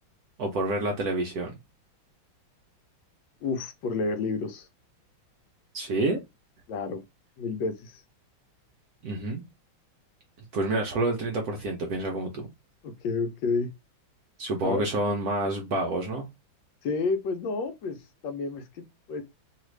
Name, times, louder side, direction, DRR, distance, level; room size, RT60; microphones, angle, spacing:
voice 1, 0.4-1.5 5.7-6.2 9.0-9.4 10.5-12.5 14.4-16.3, right 2 dB, 65° right, 0.9 m, -28 dB
voice 2, 3.4-4.7 6.7-7.0 7.4-8.0 12.8-13.7 14.6-14.9 16.8-19.2, left 4 dB, 75° left, 1.3 m, -30 dB
3.2 x 2.4 x 3.1 m
omnidirectional pair, 2.2 m